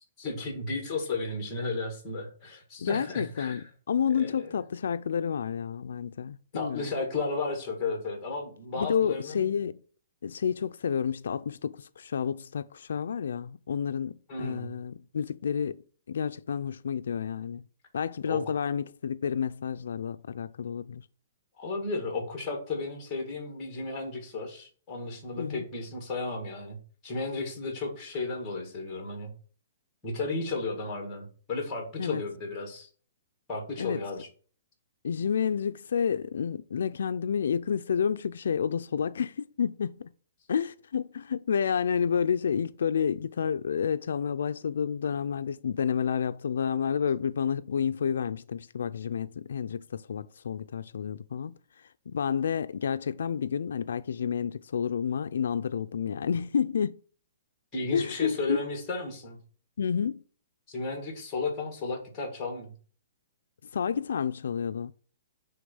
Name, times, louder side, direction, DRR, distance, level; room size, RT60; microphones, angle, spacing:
voice 1, 0.2-3.6 4.2-4.5 6.5-9.4 14.3-14.7 18.3-18.4 21.6-26.8 27.0-29.3 30.0-32.9 33.5-34.3 57.7-59.4 60.7-62.7, left 3 dB, 10° left, 2.1 m, -34 dB
voice 2, 2.8-6.9 8.8-9.8 10.2-17.6 17.9-21.0 25.4-25.6 32.0-32.2 33.8-34.1 35.0-40.1 40.5-57.0 57.9-58.6 59.8-60.2 63.7-64.9, left 7 dB, 80° left, 0.3 m, -30 dB
9.4 x 3.5 x 5.5 m
hypercardioid pair, 180°, 0 cm